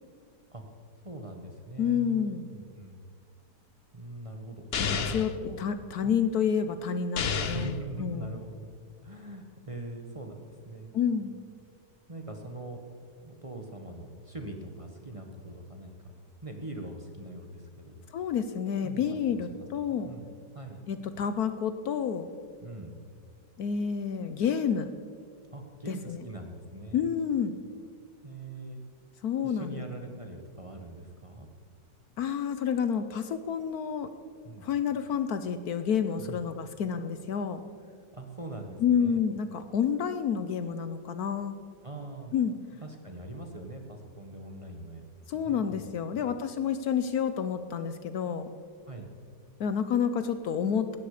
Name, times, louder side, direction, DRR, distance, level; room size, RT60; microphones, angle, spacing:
voice 1, 1.0-2.2 2.5-3.0 3.9-5.6 6.0-6.1 7.4-8.7 9.0-10.9 12.1-12.8 13.2-16.0 16.4-18.0 18.8-20.8 22.6-22.9 25.5-27.1 28.2-28.8 29.4-31.5 34.4-34.7 36.2-36.4 38.1-39.2 41.8-42.3 42.8-45.0 45.3-46.3 48.9-49.1, right 2 dB, 20° right, 3 dB, 1.2 m, -42 dB
voice 2, 1.8-2.5 4.8-8.4 10.9-11.3 18.1-20.1 20.9-22.3 23.6-24.9 25.9-26.2 26.9-27.5 29.2-29.8 32.2-34.1 34.6-37.6 38.8-41.5 42.3-42.5 45.3-48.5 49.6-51.0, left 7 dB, 65° left, 10 dB, 1.2 m, -29 dB
sound 1, 4.7-5.3 7.2-7.8, left 5 dB, 45° left, 0.8 m, -30 dB
17.5 x 13.5 x 5.0 m, 2.1 s
omnidirectional pair, 1.9 m